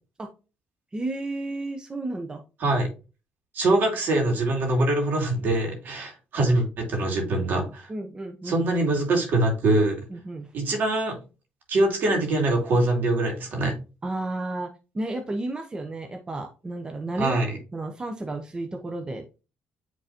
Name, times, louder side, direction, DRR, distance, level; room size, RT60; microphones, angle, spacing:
voice 1, 0.9-2.4 7.9-8.7 10.1-10.5 14.0-14.7 14.9-19.4, right 2 dB, 25° right, 4 dB, 0.9 m, -32 dB
voice 2, 3.5-7.9 8.4-10.0 10.5-11.2 11.7-13.7 17.2-17.6, right 2 dB, 60° right, 2 dB, 2.6 m, -23 dB
8.9 x 3.9 x 2.9 m, 0.31 s
cardioid pair, 95°, 4 cm